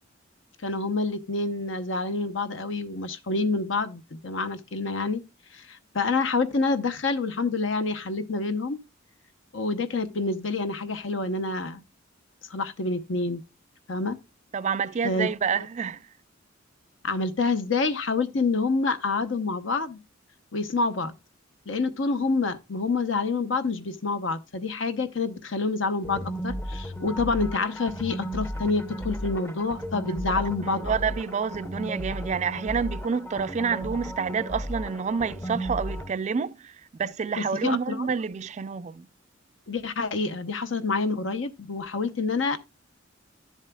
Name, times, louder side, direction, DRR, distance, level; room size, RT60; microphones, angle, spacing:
voice 1, 0.6-5.2 5.5-8.8 9.5-11.8 12.5-13.4 13.9-14.2 15.0-15.3 17.0-20.0 20.5-21.2 21.7-30.9 37.4-38.1 39.7-42.6, left 3 dB, 70° left, 0.8 m, -27 dB
voice 2, 14.5-16.0 30.1-39.1, right 6 dB, 35° right, 0.4 m, -28 dB
sound 1, 26.0-36.1, equal, 10° left, 0.6 m, -34 dB
12.0 x 7.2 x 2.2 m
head